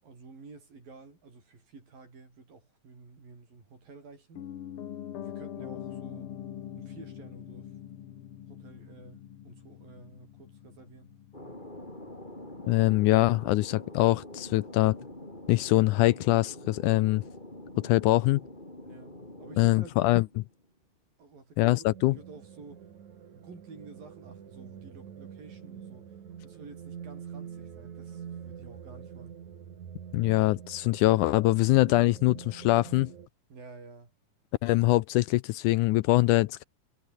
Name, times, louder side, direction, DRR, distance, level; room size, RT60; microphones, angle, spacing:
voice 1, 0.0-4.5 5.2-6.4 6.7-7.7 8.5-11.2 18.8-19.9 21.2-21.6 22.2-22.9 23.3-26.1 26.4-29.4 33.5-34.1, right 4 dB, 80° right, 9.3 m, -51 dB
Piano, 4.3-14.3 14.6-14.7, left 10 dB, 60° left, 1.5 m, -44 dB
Thunder, 11.3-20.7, left 1 dB, 10° left, 6.2 m, -45 dB
voice 2, 12.7-15.0 15.5-17.2 17.8-18.4 19.6-20.4 21.6-22.2 30.1-33.1 34.6-36.6, left 18 dB, 80° left, 1.9 m, -23 dB
sound 1, 21.8-33.3, right 8 dB, 60° right, 3.6 m, -46 dB
omnidirectional pair, 4.0 m